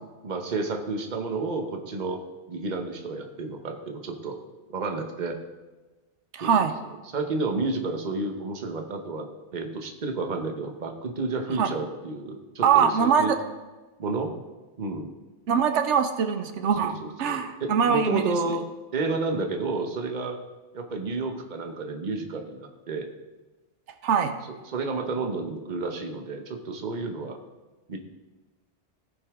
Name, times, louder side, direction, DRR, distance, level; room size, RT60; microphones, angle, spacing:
voice 1, 0.2-2.2 2.5-4.4 4.7-5.4 6.4-6.7 7.1-13.3 14.0-14.3 14.8-15.1 16.8-18.7 18.9-20.4 20.7-23.1 24.7-27.4 27.9-28.0, right 3 dB, 45° right, 4 dB, 1.0 m, -31 dB
voice 2, 6.3-6.7 11.6-11.7 12.6-13.4 15.5-18.3 24.0-24.3, right 7 dB, 90° right, 7 dB, 1.0 m, -23 dB
16.5 x 5.4 x 3.6 m, 1.2 s
omnidirectional pair, 1.2 m